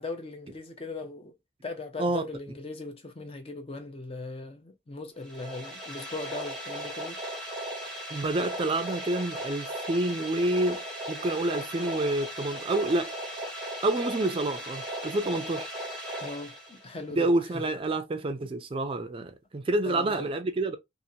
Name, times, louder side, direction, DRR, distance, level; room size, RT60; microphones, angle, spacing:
voice 1, 0.0-1.3 1.6-7.2 16.2-17.3 17.5-17.6 19.8-20.3, left 3 dB, 35° left, 0.6 m, -39 dB
sound 1, 5.2-17.1, right 1 dB, 5° left, 0.8 m, -37 dB
voice 2, 8.1-10.8 11.1-13.1 13.8-15.7 17.1-20.8, right 2 dB, 30° right, 0.4 m, -28 dB
2.7 x 2.5 x 2.7 m
head